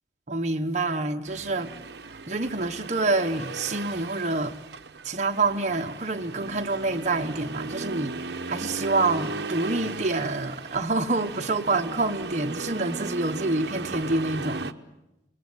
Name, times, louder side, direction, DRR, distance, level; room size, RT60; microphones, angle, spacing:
voice 1, 0.3-1.7 2.3-4.6 5.0-14.6, right 3 dB, 40° right, 1.2 m, -27 dB
Accelerating revving vroom, 1.3-14.7, right 3 dB, 65° right, 0.9 m, -36 dB
27.0 x 20.0 x 8.0 m
head